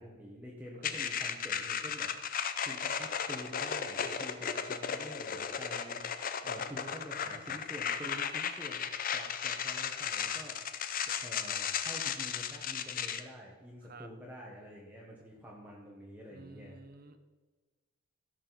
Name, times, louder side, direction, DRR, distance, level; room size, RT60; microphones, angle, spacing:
voice 1, 0.0-2.1 2.6-10.7 11.1-16.8, equal, 10° right, -3 dB, 1.1 m, -48 dB
sound 1, 0.8-13.2, left 7 dB, 40° left, 0.5 m, -35 dB
voice 2, 0.8-1.2 6.4-7.7 13.8-14.1 16.3-17.2, right 3 dB, 40° right, 8 dB, 0.8 m, -54 dB
16.0 x 6.4 x 4.0 m, 1.3 s
head